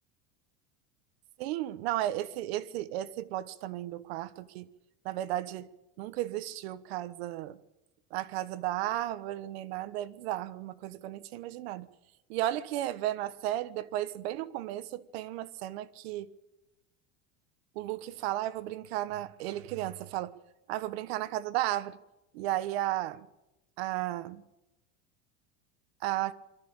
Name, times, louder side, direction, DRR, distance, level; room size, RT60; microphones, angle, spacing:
voice 1, 1.4-4.7 5.0-5.7 6.0-7.6 8.1-11.9 12.3-16.3 17.7-20.4 20.7-22.0 22.3-23.3 23.8-24.4 26.0-26.3, right 14 dB, 70° right, 1.3 m, -34 dB
23.5 x 13.0 x 8.8 m
cardioid pair, 175°, 32 cm